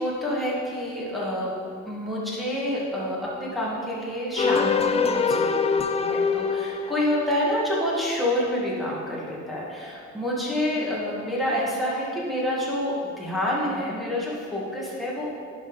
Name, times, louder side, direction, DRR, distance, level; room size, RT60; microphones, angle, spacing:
voice 1, 0.0-1.5 1.8-15.3, left 1 dB, ahead, -6 dB, 1.9 m, -28 dB
sound 1, 4.4-7.6, left 5 dB, 20° left, 0.3 m, -24 dB
10.0 x 3.8 x 4.9 m, 2.3 s
cardioid pair, 90°, 30 cm